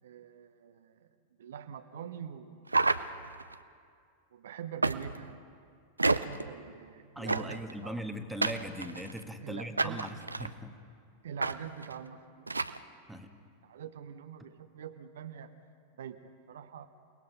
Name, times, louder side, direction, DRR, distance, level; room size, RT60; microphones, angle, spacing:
voice 1, 0.0-1.1 1.4-2.8 4.3-5.4 6.0-8.0 9.4-10.0 11.2-12.9 13.6-15.6 15.9-16.9, right 8 dB, 60° right, 8 dB, 0.9 m, -45 dB
sound 1, 2.7-3.6 4.8-5.3 6.0-6.5 7.3-7.7 8.4-9.2 9.8-10.5 11.4-11.5 11.8-11.9 12.5-12.8, right 3 dB, 80° right, 0.5 m, -30 dB
voice 2, 7.1-10.8 13.1-13.3, equal, 5° right, 5 dB, 1.4 m, -39 dB
29.0 x 19.0 x 5.4 m, 2.2 s
figure-of-eight pair, 90°, 0 cm